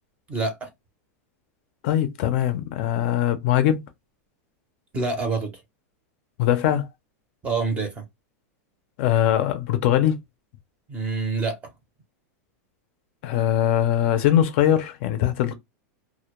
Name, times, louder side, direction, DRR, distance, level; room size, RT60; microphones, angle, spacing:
voice 1, 0.3-0.7 4.9-5.6 7.4-8.0 10.9-11.6, right 4 dB, 15° right, 0.6 m, -26 dB
voice 2, 1.8-3.8 6.4-6.9 9.0-10.2 13.2-15.5, left 11 dB, 45° left, 0.4 m, -21 dB
2.1 x 2.1 x 2.9 m
supercardioid pair, 165°, 8 cm